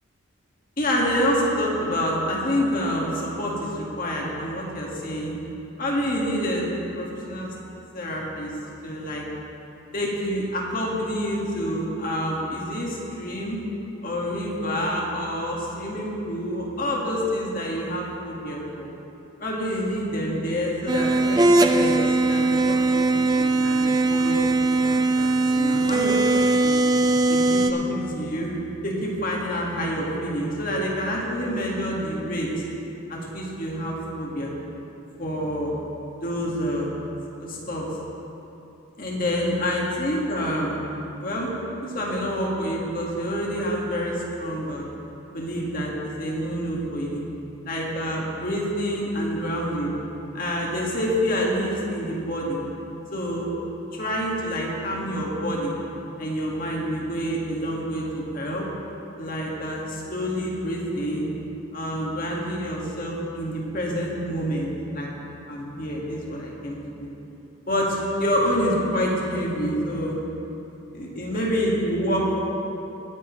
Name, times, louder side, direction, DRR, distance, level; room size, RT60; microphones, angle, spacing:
voice 1, 0.8-5.4 5.8-7.5 7.9-8.5 8.8-9.2 9.9-13.6 14.0-18.9 19.4-23.1 23.3-24.5 24.8-26.8 27.3-32.5 33.1-34.5 35.2-35.7 36.2-36.9 37.4-37.8 39.0-40.8 41.2-41.5 41.8-44.9 45.3-45.9 46.2-47.2 47.7-49.9 50.3-52.6 53.1-53.5 53.9-55.7 56.2-58.6 59.2-61.3 61.7-65.1 65.5-66.8 67.7-70.2 70.9-72.4, equal, 40° left, -3 dB, 1.9 m, -27 dB
sound 1, 20.9-27.7, right 2 dB, 20° right, 0.4 m, -20 dB
18.5 x 9.9 x 3.2 m, 3.0 s
head